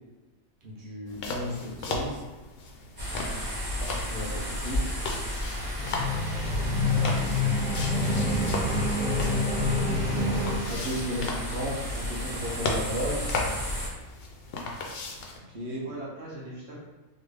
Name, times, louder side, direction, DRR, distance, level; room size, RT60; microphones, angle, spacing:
voice 1, 0.6-2.2 4.1-4.9 10.7-13.4 15.5-15.9, equal, 40° right, -5 dB, 0.8 m, -34 dB
sound 1, 1.1-15.4, left 2 dB, 65° left, 0.6 m, -36 dB
sound 2, 3.0-13.9, equal, 15° right, 1.1 m, -33 dB
sound 3, 5.8-10.6, left 2 dB, 25° left, 0.7 m, -27 dB
voice 2, 6.6-7.2 8.2-9.3 15.8-16.8, right 1 dB, 65° right, -6 dB, 1.4 m, -42 dB
3.1 x 2.4 x 3.3 m, 1.2 s
omnidirectional pair, 1.4 m